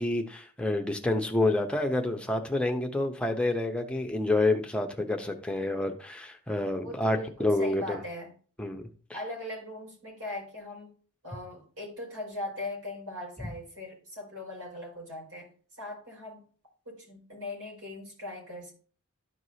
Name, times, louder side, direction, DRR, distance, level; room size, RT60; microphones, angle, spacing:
voice 1, 0.0-8.0 8.6-8.8, left 2 dB, 5° left, 0.7 m, -28 dB
voice 2, 6.7-8.3 9.1-10.9 11.2-15.5 15.8-16.4 16.8-18.7, left 1 dB, 75° right, 4.5 m, -40 dB
13.0 x 4.7 x 2.8 m
head